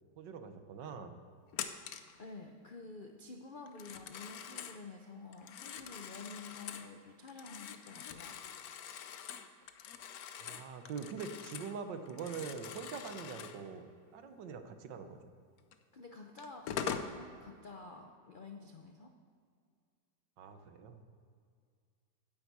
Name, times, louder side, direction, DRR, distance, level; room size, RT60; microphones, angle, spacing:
voice 1, 0.2-1.2 10.4-15.2 20.4-21.0, right 6 dB, 75° right, 8 dB, 1.6 m, -44 dB
Telephone, 1.5-2.2 3.7-4.8 5.3-6.9 7.3-11.8 12.1-13.6 15.7-15.8 16.4-17.1, left 8 dB, 65° left, 1.0 m, -44 dB
voice 2, 2.2-8.4 15.9-19.1, left 3 dB, 85° left, 4 dB, 0.4 m, -50 dB
9.5 x 9.2 x 8.2 m, 2.2 s
omnidirectional pair, 2.0 m